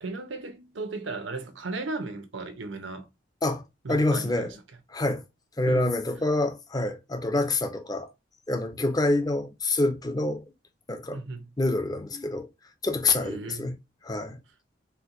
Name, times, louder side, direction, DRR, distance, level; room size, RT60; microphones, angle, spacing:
voice 1, 0.0-3.1 3.8-4.6 5.7-6.0 11.1-11.5 13.2-13.7, right 3 dB, 75° right, 0.8 m, -35 dB
voice 2, 3.9-4.5 4.9-5.2 5.6-8.1 8.5-10.4 10.9-11.2 11.6-12.5 12.8-13.7 14.1-14.4, left 2 dB, 20° left, 0.5 m, -26 dB
4.3 x 2.2 x 2.5 m
head